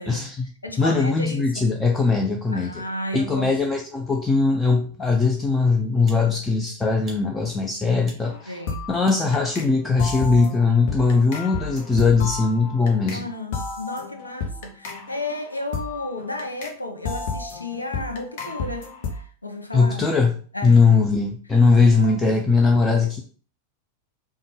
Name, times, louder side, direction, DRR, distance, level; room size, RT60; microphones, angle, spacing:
voice 1, 0.1-0.5 0.8-2.8 3.1-8.6 8.9-13.3 19.7-20.4 20.6-23.2, left 4 dB, 15° left, 0.4 m, -20 dB
voice 2, 0.6-1.7 2.5-3.6 8.5-8.9 13.1-20.1 20.5-20.8 21.8-22.3, left 1 dB, 85° left, 0.5 m, -33 dB
sound 1, 5.1-5.3 6.0-6.3 7.0-7.2 8.0-8.2 9.0-9.2 10.0-10.3, right 3 dB, 20° right, 0.9 m, -45 dB
sound 2, 8.2-8.4 8.7-9.7 10.0-13.2 13.5-16.8 17.0-19.2, left 4 dB, 50° left, 0.7 m, -32 dB
3.5 x 2.2 x 3.2 m
figure-of-eight pair, 90°, 0 cm